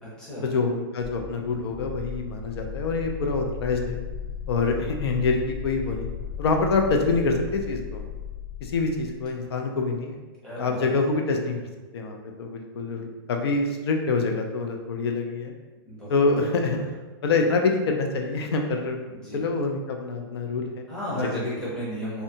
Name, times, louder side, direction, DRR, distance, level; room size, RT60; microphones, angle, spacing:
voice 1, 0.4-4.0 4.5-6.1 6.4-8.0 8.6-10.2 10.6-11.7 11.9-15.5 16.1-16.8 17.2-19.0 19.3-20.9 21.3-21.4, left 3 dB, 90° left, 3 dB, 0.4 m, -26 dB
sound 1, 1.0-9.2, left 7 dB, 35° left, 1.0 m, -36 dB
voice 2, 10.4-10.9 15.8-16.1 16.5-16.8 19.1-19.4 20.9-22.2, equal, 5° left, -9 dB, 0.5 m, -33 dB
2.7 x 2.2 x 2.6 m, 1.2 s
supercardioid pair, 175°, 13 cm